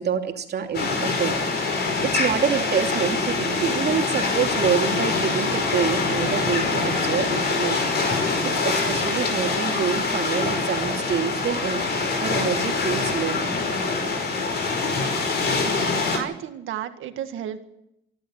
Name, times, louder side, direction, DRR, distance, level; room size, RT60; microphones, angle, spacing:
voice 1, 0.0-1.8 2.0-7.9 8.4-11.8 12.2-13.4, right 7 dB, 55° right, 3 dB, 2.9 m, -27 dB
sound 1, 0.7-16.2, left 3 dB, 55° left, 5.3 m, -24 dB
voice 2, 15.6-17.7, right 10 dB, 80° right, 8 dB, 1.9 m, -33 dB
25.5 x 12.5 x 8.9 m, 0.82 s
cardioid pair, 90°, 20 cm